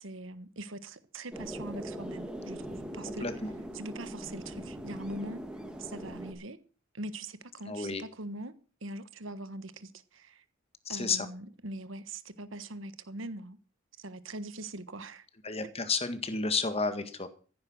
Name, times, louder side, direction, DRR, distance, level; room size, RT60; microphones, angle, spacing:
voice 1, 0.0-3.2 3.7-5.4 5.8-6.6 6.9-8.5 8.8-10.4 10.9-13.6 14.0-15.3, right 2 dB, 70° right, 1.4 m, -42 dB
sound 1, 1.3-6.3, right 1 dB, 5° right, 2.2 m, -41 dB
voice 2, 7.7-8.0 10.8-11.3 15.4-17.3, left 4 dB, 30° left, 1.7 m, -31 dB
15.0 x 9.6 x 6.4 m
head